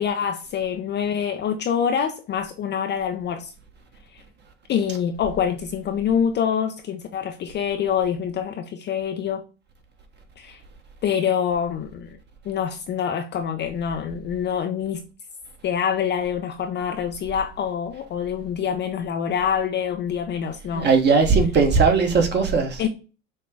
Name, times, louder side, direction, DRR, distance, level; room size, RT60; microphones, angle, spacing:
voice 1, 0.0-3.5 4.1-4.2 4.7-9.5 10.4-10.6 11.0-12.2 12.4-15.1 15.6-20.9 22.8-22.9, left 8 dB, 30° left, 0.5 m, -25 dB
voice 2, 20.7-22.8, right 4 dB, 25° right, 1.1 m, -18 dB
6.3 x 2.1 x 3.4 m
hypercardioid pair, 100°, 38 cm